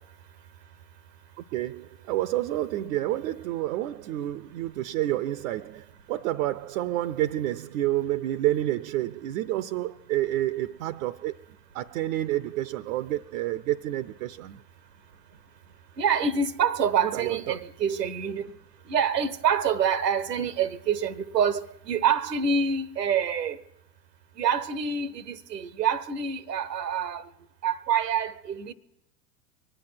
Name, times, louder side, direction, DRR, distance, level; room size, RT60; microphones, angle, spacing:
voice 1, 1.4-11.4 11.7-14.6 17.0-17.6, right 14 dB, 60° right, 0.5 m, -29 dB
voice 2, 16.0-18.5 18.9-23.6 24.4-27.2 27.6-28.7, right 7 dB, 90° right, 0.9 m, -26 dB
23.0 x 8.9 x 5.8 m
hypercardioid pair, 90°, 47 cm